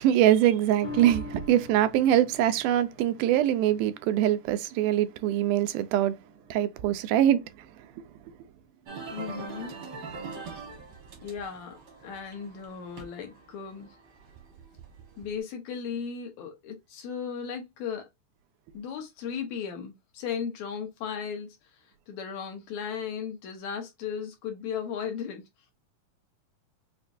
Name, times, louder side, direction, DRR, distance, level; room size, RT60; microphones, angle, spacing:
voice 1, 0.0-6.2 6.5-7.4 8.0-8.1, right 12 dB, 90° right, 2.1 m, -23 dB
sound 1, 0.8-7.5 7.9-8.0, left 4 dB, 50° left, 1.3 m, -45 dB
sound 2, 8.9-15.2, right 4 dB, 60° right, 1.1 m, -43 dB
voice 2, 9.1-9.7 11.2-14.0 15.2-18.0 18.7-21.6 22.1-25.4, left 7 dB, 70° left, 2.1 m, -36 dB
5.8 x 2.2 x 2.5 m
omnidirectional pair, 3.6 m